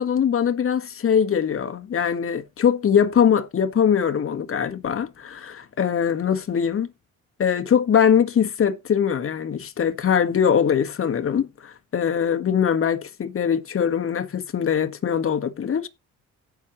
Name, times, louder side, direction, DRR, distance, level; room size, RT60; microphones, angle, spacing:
voice 1, 0.0-6.9 7.4-15.9, left 8 dB, 45° left, 1.5 m, -22 dB
16.5 x 6.2 x 3.1 m
cardioid pair, 90°, 30 cm